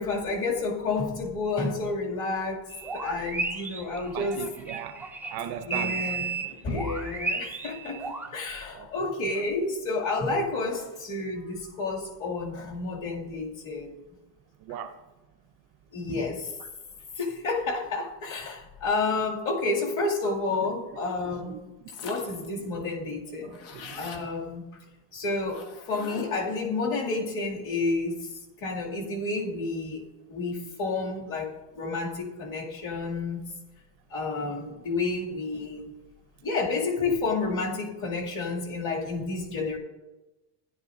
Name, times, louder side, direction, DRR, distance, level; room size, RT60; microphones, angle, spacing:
voice 1, 0.0-2.6 2.9-4.4 5.6-14.0 15.9-16.5 17.2-21.6 22.0-23.6 23.9-24.6 25.1-30.0 30.3-33.4 34.1-35.9 36.4-39.8, left 3 dB, 40° left, 2.4 m, -30 dB
sound 1, 2.7-8.3, right 4 dB, 5° right, 0.4 m, -34 dB
voice 2, 4.1-6.3 8.7-8.9 14.6-15.0 16.6-16.7 20.6-20.7 21.2-22.0 23.4-24.1, right 9 dB, 50° right, 0.6 m, -39 dB
sound 2, 21.9-22.5 22.8-22.9 23.1-24.3 25.5-26.5, left 5 dB, 65° left, 1.7 m, -43 dB
16.0 x 11.0 x 2.6 m
cardioid pair, 150°, 49 cm